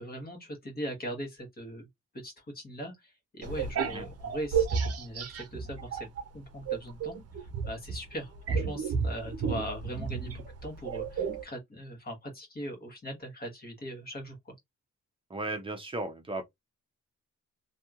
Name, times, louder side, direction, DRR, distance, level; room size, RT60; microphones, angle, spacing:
voice 1, 0.0-1.9 2.2-14.5, equal, 30° left, 1.4 m, -40 dB
sound 1, 3.4-6.3 6.6-11.4, right 6 dB, 55° right, 0.7 m, -32 dB
voice 2, 15.3-16.4, right 2 dB, 15° right, 0.7 m, -35 dB
3.1 x 2.7 x 2.4 m
wide cardioid pair, 150°, 30 cm